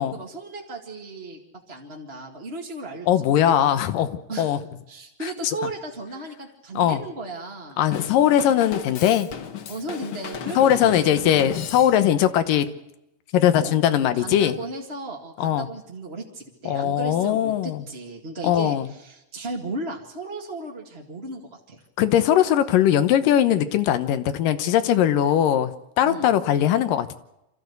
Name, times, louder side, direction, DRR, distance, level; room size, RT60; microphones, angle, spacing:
voice 1, 0.0-1.4 1.7-3.5 4.3-4.6 4.9-7.8 9.7-11.1 13.6-13.8 14.0-21.4 21.7-21.8 26.0-26.3, right 2 dB, 25° right, -1 dB, 1.7 m, -35 dB
voice 2, 3.1-4.6 6.8-7.0 7.8-9.3 10.6-12.7 13.3-14.5 15.4-15.7 16.7-17.8 18.4-18.9 22.0-25.7 26.0-27.2, left 10 dB, 85° left, 11 dB, 2.7 m, -20 dB
Drum kit / Drum, 7.9-12.3, left 8 dB, 55° left, 1.4 m, -35 dB
26.5 x 14.5 x 8.1 m, 0.87 s
omnidirectional pair, 3.8 m